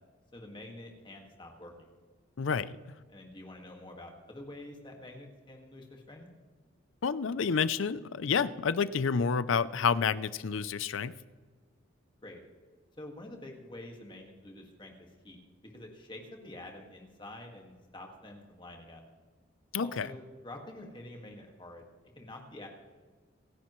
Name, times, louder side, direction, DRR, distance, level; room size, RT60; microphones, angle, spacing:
voice 1, 0.3-1.9 3.1-6.3 12.2-12.4 13.0-19.0 19.8-21.9 22.1-22.7, left 1 dB, 25° left, 2 dB, 1.8 m, -47 dB
voice 2, 2.4-2.8 7.0-11.1 19.7-20.1, left 6 dB, 75° left, 16 dB, 0.5 m, -29 dB
26.5 x 10.0 x 3.1 m, 1.4 s
head